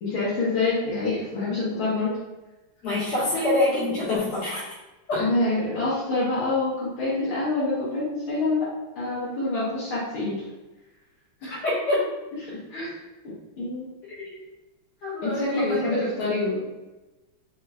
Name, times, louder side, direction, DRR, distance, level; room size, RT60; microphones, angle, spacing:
voice 1, 0.0-2.1 5.1-8.7 9.0-10.4 11.4-11.6 12.7-13.0 13.6-13.9 15.2-16.7, left 2 dB, 75° left, -10 dB, 2.0 m, -26 dB
voice 2, 2.8-4.7 5.1-5.2 11.6-12.0 14.2-14.4 15.0-15.8, left 2 dB, 55° left, -9 dB, 2.2 m, -25 dB
4.7 x 3.1 x 2.4 m, 1.1 s
omnidirectional pair, 2.3 m